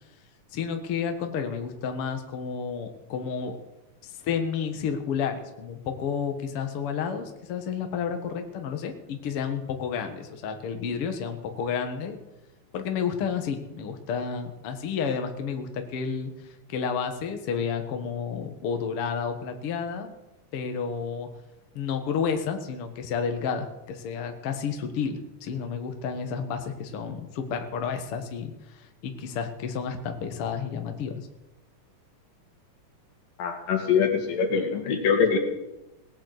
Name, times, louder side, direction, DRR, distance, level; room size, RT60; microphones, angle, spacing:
voice 1, 0.5-3.6 4.2-12.2 12.7-16.3 16.7-20.1 20.5-21.3 21.8-31.3, left 6 dB, 50° left, 6 dB, 2.0 m, -31 dB
voice 2, 33.4-35.4, left 6 dB, 85° left, 3 dB, 3.9 m, -23 dB
18.0 x 9.0 x 8.0 m, 0.96 s
omnidirectional pair, 3.8 m